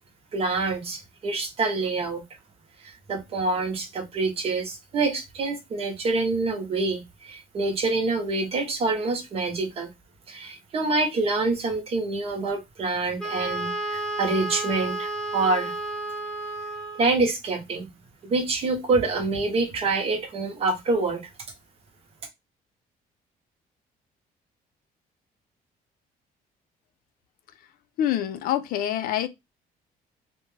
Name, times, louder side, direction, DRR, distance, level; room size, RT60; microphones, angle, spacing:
voice 1, 0.3-2.2 3.1-9.9 10.3-15.7 17.0-17.9 18.2-21.3, right 3 dB, 40° right, 0.7 m, -26 dB
Wind instrument woodwind instrument, 13.2-17.2, right 1 dB, 5° left, 0.6 m, -32 dB
voice 2, 28.0-29.3, left 11 dB, 70° left, 0.4 m, -26 dB
2.4 x 2.2 x 3.1 m
cardioid pair, 165°, 15 cm